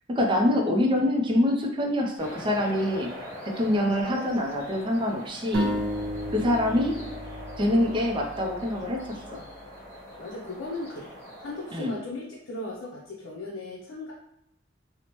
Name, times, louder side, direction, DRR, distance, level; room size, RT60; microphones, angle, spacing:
voice 1, 0.1-3.1 3.5-5.7 6.3-7.0 7.6-9.4 11.7-11.9, left 1 dB, 25° right, 1 dB, 0.4 m, -25 dB
sound 1, 2.2-12.0, equal, 20° left, 1.2 m, -42 dB
sound 2, 5.5-9.2, equal, 90° right, 0.5 m, -32 dB
voice 2, 10.2-11.1 11.4-14.1, left 2 dB, 75° left, -4 dB, 0.6 m, -37 dB
2.9 x 2.0 x 2.9 m, 0.76 s
head